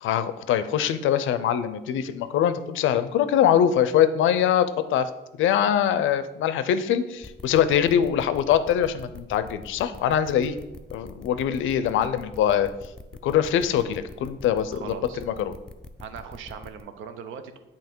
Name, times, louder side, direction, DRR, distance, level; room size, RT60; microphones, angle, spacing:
voice 1, 0.0-5.1 5.4-10.5 10.9-12.7 13.2-15.5, left 9 dB, 80° left, 13 dB, 0.5 m, -23 dB
sound 1, 7.2-16.8, left 2 dB, 5° left, 0.4 m, -43 dB
voice 2, 14.7-15.2 16.0-17.6, right 7 dB, 85° right, 9 dB, 0.6 m, -39 dB
7.9 x 2.9 x 4.4 m, 0.98 s
cardioid pair, 90°, 20 cm